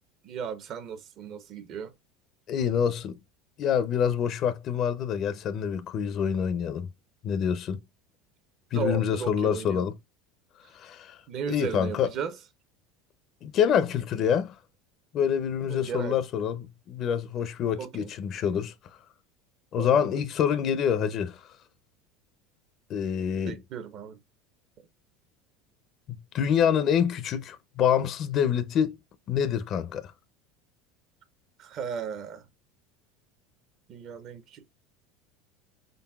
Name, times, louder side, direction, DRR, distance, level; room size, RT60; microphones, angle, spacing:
voice 1, 0.2-1.9 8.7-9.9 11.3-12.3 15.7-16.2 17.8-18.1 19.8-20.0 23.5-24.2 31.6-32.4 33.9-34.7, right 7 dB, 50° right, 0.7 m, -35 dB
voice 2, 2.5-3.2 3.6-6.9 7.2-7.8 8.7-10.0 10.7-11.2 11.5-12.1 13.4-14.6 15.1-19.0 19.7-21.5 22.9-23.6 26.1-29.0 29.3-30.1, left 8 dB, 45° left, 0.5 m, -26 dB
3.9 x 3.8 x 2.3 m
supercardioid pair, 110°, 0 cm